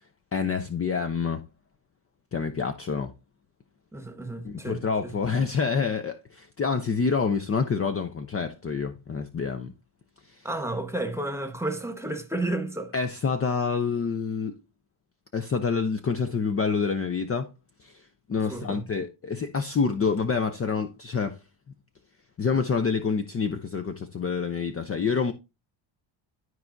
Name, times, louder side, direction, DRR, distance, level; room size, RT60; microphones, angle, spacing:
voice 1, 0.3-1.4 2.3-3.1 4.4-9.7 10.3-10.4 12.9-14.5 15.3-17.5 17.8-18.0 18.3-21.4 22.4-25.3, left 5 dB, 30° left, 0.7 m, -27 dB
voice 2, 3.9-5.1 10.4-12.9 18.5-18.8, right 2 dB, 5° right, 1.3 m, -32 dB
12.5 x 4.6 x 2.7 m
cardioid pair, 95°, 49 cm